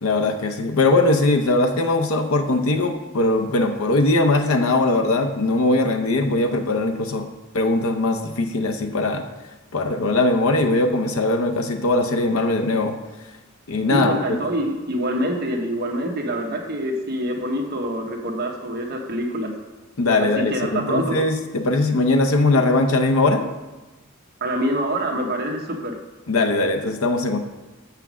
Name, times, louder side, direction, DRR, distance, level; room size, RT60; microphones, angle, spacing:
voice 1, 0.0-7.3 7.5-9.2 9.7-12.9 13.7-14.4 20.0-23.4 26.3-27.4, left 2 dB, 75° left, 4 dB, 0.7 m, -20 dB
voice 2, 13.9-19.5 20.5-21.2 24.4-25.9, equal, 50° right, 1 dB, 1.0 m, -25 dB
7.2 x 5.7 x 6.1 m, 1.1 s
head